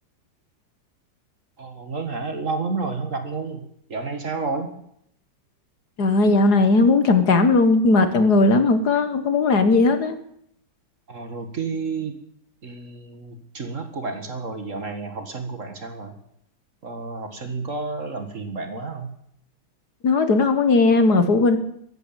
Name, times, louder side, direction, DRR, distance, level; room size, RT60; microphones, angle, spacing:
voice 1, 1.6-3.6 3.9-4.8 11.1-12.1 12.6-16.2 16.8-19.1, right 4 dB, 40° right, 7 dB, 2.0 m, -30 dB
voice 2, 6.0-10.2 20.0-21.6, left 3 dB, 55° left, 9 dB, 1.8 m, -17 dB
14.5 x 11.0 x 9.0 m, 0.70 s
omnidirectional pair, 2.1 m